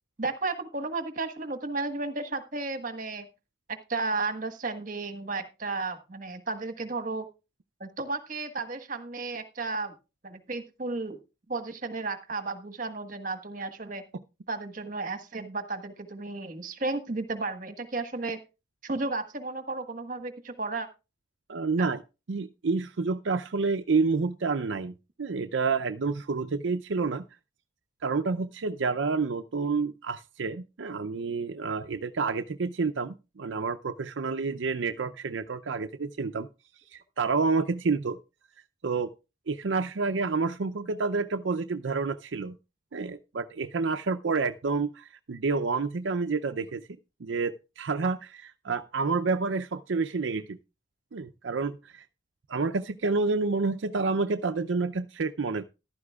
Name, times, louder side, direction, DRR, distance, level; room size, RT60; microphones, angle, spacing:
voice 1, 0.2-3.3 3.7-7.3 7.8-9.9 10.2-11.2 11.5-14.0 14.5-18.4 18.8-20.9 21.8-21.9, right 3 dB, 45° right, 1.5 m, -33 dB
voice 2, 21.5-22.0 22.3-24.9 25.2-27.2 28.0-36.5 36.9-38.2 38.8-39.1 39.5-42.5 42.9-46.9 47.2-50.6 51.1-52.1 52.5-55.7, right 4 dB, 75° right, 0.6 m, -29 dB
14.5 x 12.0 x 2.4 m
head